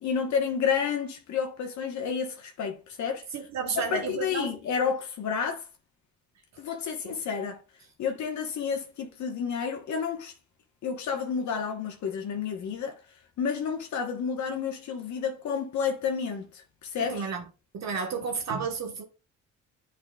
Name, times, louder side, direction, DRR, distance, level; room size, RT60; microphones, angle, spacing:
voice 1, 0.0-3.2 3.8-5.7 6.6-7.6 8.0-10.3 10.8-13.0 13.4-17.3, left 6 dB, 70° left, 1.2 m, -30 dB
voice 2, 3.3-4.5 7.0-7.2 17.0-17.4 17.7-19.0, right 5 dB, 60° right, 1.3 m, -32 dB
9.0 x 4.9 x 2.3 m
cardioid pair, 90°, 30 cm